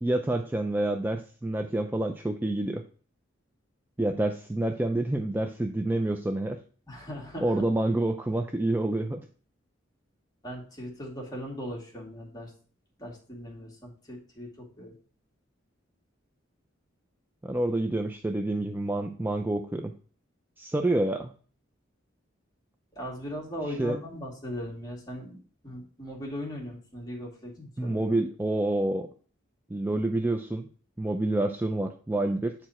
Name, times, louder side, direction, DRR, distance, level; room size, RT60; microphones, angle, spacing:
voice 1, 0.0-2.8 4.0-6.6 7.4-9.3 17.4-19.9 20.6-21.3 23.8-24.0 27.8-29.1 29.7-30.7 31.0-32.5, right 1 dB, 10° right, 5 dB, 0.4 m, -28 dB
voice 2, 6.9-7.5 10.4-12.5 13.0-15.0 22.9-28.0, equal, 20° left, -2 dB, 2.3 m, -39 dB
8.8 x 4.7 x 4.3 m, 0.42 s
head